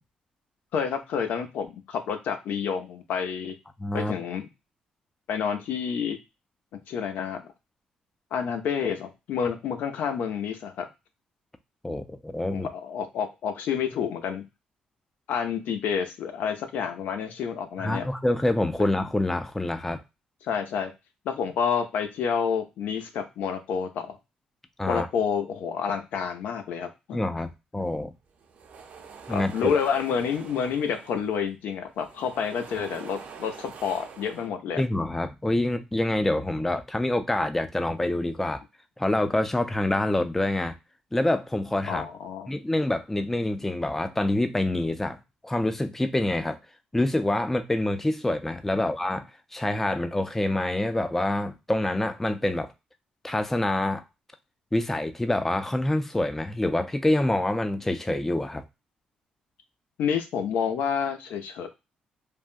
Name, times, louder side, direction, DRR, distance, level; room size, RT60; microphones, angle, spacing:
voice 1, 0.7-3.5 3.9-4.5 5.3-6.2 6.9-7.5 8.3-10.9 12.5-14.4 15.3-18.1 20.4-20.9 21.2-24.2 24.9-27.2 29.3-34.8 41.9-42.5 48.8-48.9 60.0-61.7, left 7 dB, 80° left, 0.6 m, -29 dB
voice 2, 3.8-4.1 11.8-12.7 17.8-20.0 24.8-25.1 27.1-28.1 29.3-29.8 34.8-38.6 39.0-40.7 41.1-42.1 42.5-46.6 46.9-52.7 53.2-54.0 54.7-58.6, left 1 dB, 10° left, 0.4 m, -26 dB
sound 1, 28.3-31.5 31.8-34.5, right 5 dB, 60° right, 0.7 m, -45 dB
3.4 x 2.2 x 2.4 m
cardioid pair, 100°, 3 cm